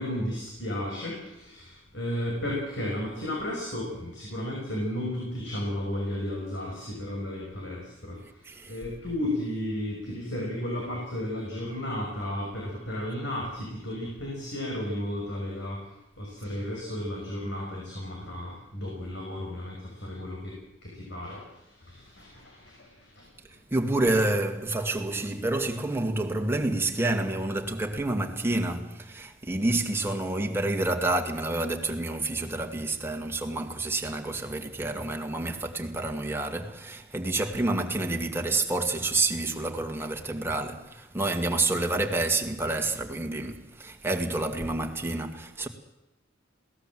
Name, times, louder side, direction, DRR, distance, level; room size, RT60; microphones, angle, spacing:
voice 1, 0.0-23.3, left 1 dB, 65° left, 6.0 m, -34 dB
voice 2, 23.7-45.7, right 2 dB, 15° right, 2.1 m, -28 dB
21.5 x 18.0 x 7.7 m
head